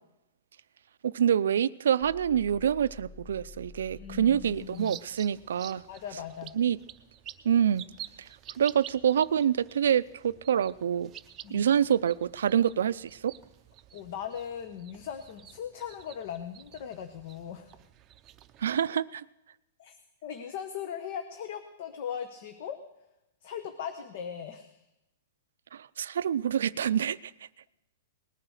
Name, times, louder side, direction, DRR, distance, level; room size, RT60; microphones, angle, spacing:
voice 1, 1.0-5.8 6.6-6.8 7.4-7.9 8.6-11.1 11.5-13.3 18.6-19.2 25.7-27.2, right 9 dB, 85° right, 0.5 m, -26 dB
sound 1, 2.0-4.8, left 3 dB, 35° left, 3.7 m, -49 dB
voice 2, 3.9-5.0 5.9-6.5 11.4-11.7 13.9-17.8 19.8-22.8 23.4-24.8, left 8 dB, 50° left, 1.2 m, -39 dB
sound 2, 4.5-18.8, right 12 dB, 25° right, 0.6 m, -50 dB
19.0 x 9.9 x 6.5 m
hypercardioid pair, 160°, 0 cm